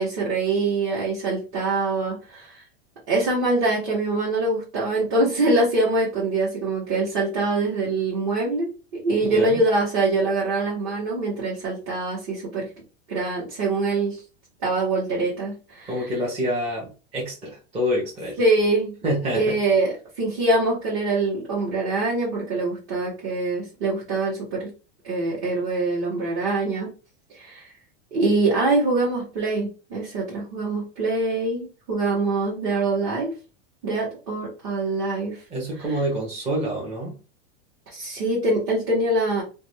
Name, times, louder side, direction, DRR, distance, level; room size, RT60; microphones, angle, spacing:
voice 1, 0.0-2.6 3.1-12.7 13.1-14.2 14.6-16.1 18.4-18.9 19.3-24.7 25.0-26.9 27.3-27.7 28.1-33.3 33.8-35.4 37.9-39.4, right 2 dB, 40° right, -6 dB, 1.1 m, -24 dB
voice 2, 9.2-9.6 15.9-18.4 19.0-19.5 35.5-37.2, equal, 20° right, -4 dB, 0.7 m, -27 dB
2.5 x 2.2 x 3.2 m, 0.34 s
supercardioid pair, 160°, 34 cm